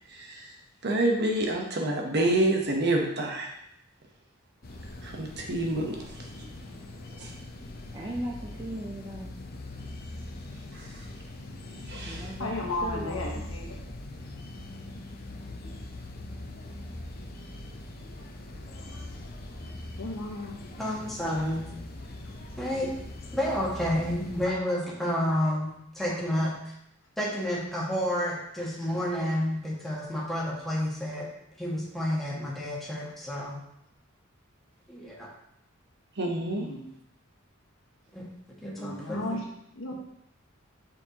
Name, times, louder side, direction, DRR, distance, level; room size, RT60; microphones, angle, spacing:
voice 1, 0.1-0.5 0.8-3.5 5.0-6.0 7.2-7.3 10.7-10.9 11.9-12.3 36.2-36.6, right 1 dB, 55° right, 1 dB, 1.1 m, -27 dB
sound 1, 4.6-24.5, left 2 dB, 50° left, 0.8 m, -41 dB
voice 2, 7.9-9.4 12.0-13.5, equal, 20° right, -1 dB, 0.7 m, -38 dB
voice 3, 12.4-13.8 20.0-20.6 36.6-36.9 38.8-39.4 39.7-39.9, left 2 dB, 70° left, -1 dB, 1.4 m, -34 dB
voice 4, 20.8-21.7 22.6-22.9 23.3-26.7 27.2-31.3 31.6-33.6 34.9-35.3 38.1-38.2 38.6-39.4, equal, ahead, -6 dB, 1.8 m, -30 dB
6.7 x 6.0 x 3.0 m, 0.76 s
head